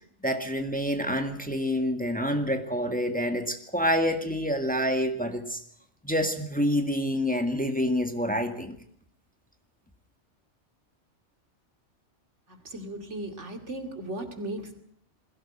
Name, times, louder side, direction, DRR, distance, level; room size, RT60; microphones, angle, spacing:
voice 1, 0.2-5.6 6.0-8.8, equal, 5° left, 6 dB, 1.9 m, -27 dB
voice 2, 12.5-14.8, right 1 dB, 75° right, 6 dB, 2.8 m, -37 dB
21.5 x 17.0 x 8.9 m, 0.65 s
omnidirectional pair, 1.2 m